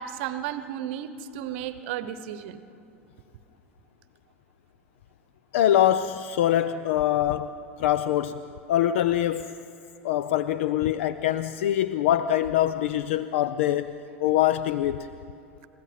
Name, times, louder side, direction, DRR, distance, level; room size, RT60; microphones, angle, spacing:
voice 1, 0.0-2.6, right 10 dB, 55° right, 13 dB, 0.9 m, -34 dB
voice 2, 5.5-7.5 7.8-8.4 8.7-9.5 10.0-13.9 14.2-15.1, left 12 dB, 60° left, 13 dB, 0.5 m, -24 dB
29.5 x 16.0 x 5.8 m, 2.6 s
figure-of-eight pair, 85°, 7 cm